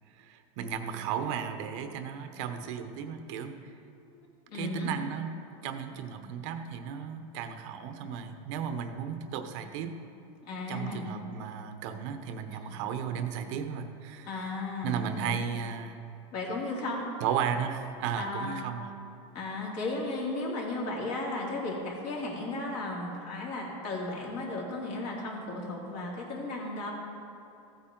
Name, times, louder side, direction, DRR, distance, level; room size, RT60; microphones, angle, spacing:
voice 1, 0.1-3.8 4.5-10.0 10.7-14.5 14.8-16.0 17.2-18.9, right 7 dB, 60° right, 8 dB, 0.9 m, -35 dB
voice 2, 4.5-4.9 10.4-11.1 12.5-12.7 14.2-15.4 16.3-17.0 18.2-18.6 19.3-26.9, left 2 dB, 50° left, -3 dB, 2.8 m, -35 dB
15.0 x 8.7 x 3.9 m, 2.8 s
supercardioid pair, 140°, 17 cm